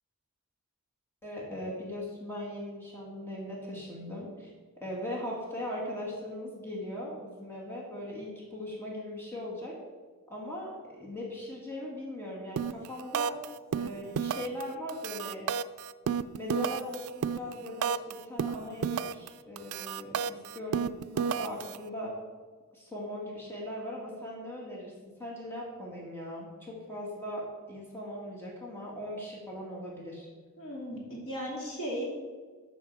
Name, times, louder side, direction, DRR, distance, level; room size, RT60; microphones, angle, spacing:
voice 1, 1.2-4.5 4.8-9.8 10.3-13.4 13.7-15.4 16.3-22.1 22.7-24.9 25.2-30.3, left 1 dB, 10° left, -5 dB, 2.2 m, -39 dB
sound 1, 12.6-12.9 13.1-13.5 13.7-14.6 14.9-18.1 18.4-19.3 19.6-21.8, right 7 dB, 75° right, 0.4 m, -31 dB
voice 2, 30.6-32.1, equal, 70° left, -3 dB, 2.8 m, -36 dB
11.5 x 6.8 x 4.8 m, 1.5 s
head